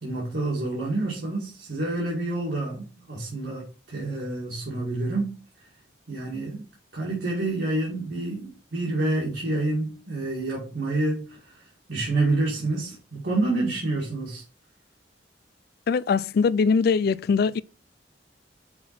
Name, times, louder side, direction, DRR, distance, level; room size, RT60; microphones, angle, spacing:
voice 1, 0.0-5.3 6.1-6.7 6.9-11.5 11.9-14.4, right 2 dB, 70° right, 2.3 m, -28 dB
voice 2, 15.9-17.6, left 5 dB, 55° left, 0.3 m, -22 dB
6.0 x 4.6 x 4.3 m
head